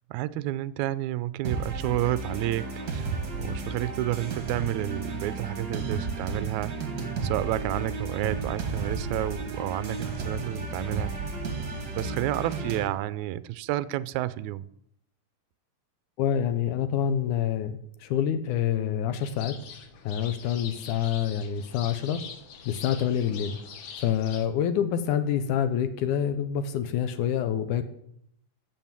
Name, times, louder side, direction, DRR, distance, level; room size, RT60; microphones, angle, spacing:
voice 1, 0.1-11.3 11.9-14.7, right 15 dB, 85° right, 16 dB, 1.7 m, -31 dB
sound 1, 1.4-12.9, right 3 dB, 50° right, 1.3 m, -33 dB
voice 2, 16.2-19.6 20.0-22.2 22.7-23.6 24.0-27.8, left 9 dB, 75° left, 10 dB, 2.1 m, -27 dB
sound 2, 19.2-24.5, left 7 dB, 60° left, 1.8 m, -43 dB
14.5 x 5.6 x 7.4 m, 0.72 s
omnidirectional pair, 3.8 m